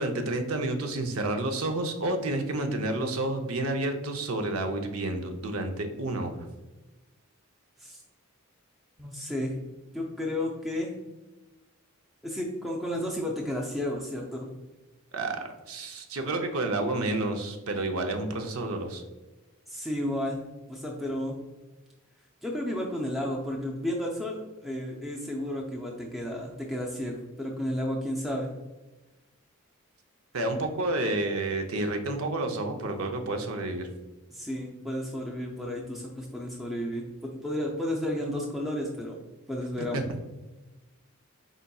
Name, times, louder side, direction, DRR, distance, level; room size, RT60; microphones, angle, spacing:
voice 1, 0.0-6.3 15.1-19.0 30.3-33.9 39.8-40.0, right 2 dB, 75° right, 5 dB, 0.7 m, -30 dB
voice 2, 9.0-9.6 9.9-10.9 12.2-14.5 19.7-20.4 20.7-21.4 22.4-28.5 34.3-39.2 39.5-40.1, left 1 dB, ahead, -3 dB, 0.4 m, -32 dB
5.1 x 4.0 x 2.3 m, 1.1 s
head